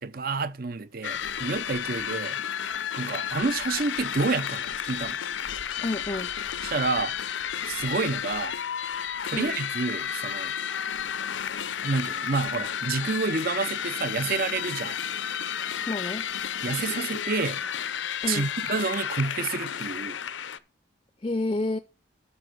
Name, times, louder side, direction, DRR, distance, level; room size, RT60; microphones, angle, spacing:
voice 1, 0.0-2.4 3.0-5.2 6.6-7.2 7.7-8.6 9.2-10.5 11.8-15.0 16.6-17.6 18.3-20.2, right 4 dB, 50° right, 0.6 m, -29 dB
sound 1, 1.0-20.6, left 8 dB, 90° left, 0.6 m, -32 dB
voice 2, 5.8-6.3 9.3-9.6 15.9-16.3 18.2-18.5 21.2-21.8, left 2 dB, 25° left, 0.5 m, -29 dB
12.5 x 4.5 x 6.1 m
head